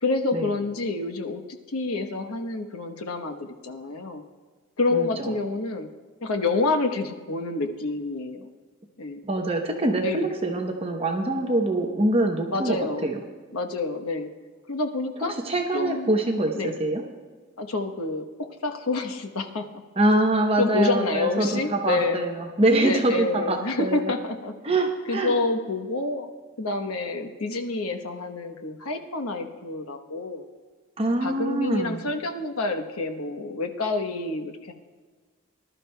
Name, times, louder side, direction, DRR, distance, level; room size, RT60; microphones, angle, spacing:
voice 1, 0.0-4.2 4.8-5.9 6.2-8.5 9.0-9.2 10.0-10.3 12.5-13.1 13.5-14.3 14.7-15.3 15.7-16.1 16.5-16.8 17.6-19.7 20.6-22.2 22.8-24.5 25.1-26.3 26.6-30.4 31.2-34.7, left 3 dB, 90° left, 6 dB, 1.0 m, -28 dB
voice 2, 4.9-5.3 9.2-13.2 15.2-17.0 20.0-24.1 24.6-25.4 31.0-32.0, right 2 dB, 25° right, 2 dB, 0.8 m, -24 dB
20.0 x 12.0 x 2.2 m, 1.5 s
head